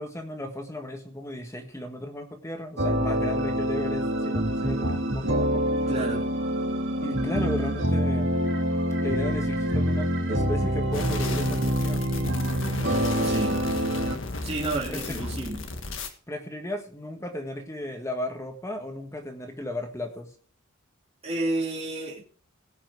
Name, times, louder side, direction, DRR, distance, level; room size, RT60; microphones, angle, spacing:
voice 1, 0.0-5.6 7.0-8.3 9.0-12.2 13.9-15.2 16.3-20.3, left 1 dB, 15° left, 1.5 m, -35 dB
sound 1, 2.8-14.2, equal, 65° right, 2.2 m, -26 dB
voice 2, 5.9-6.3 13.2-13.6 14.4-15.6 21.2-22.2, right 2 dB, 30° right, 2.6 m, -30 dB
sound 2, 10.9-16.1, left 3 dB, 65° left, 1.6 m, -35 dB
18.0 x 6.0 x 4.8 m
head